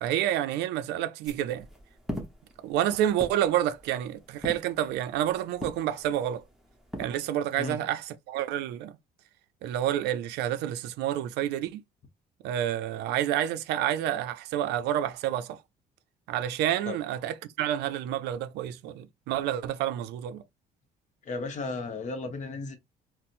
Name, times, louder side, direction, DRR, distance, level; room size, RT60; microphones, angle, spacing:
voice 1, 0.0-1.7 2.6-6.4 7.0-8.9 9.6-11.8 12.4-15.6 16.3-20.4, right 11 dB, 80° right, 0.4 m, -29 dB
sound 1, 1.2-7.0, left 1 dB, ahead, 0.9 m, -42 dB
voice 2, 21.2-22.8, left 3 dB, 45° left, 0.8 m, -34 dB
4.1 x 2.0 x 2.5 m
cardioid pair, 110°, 17 cm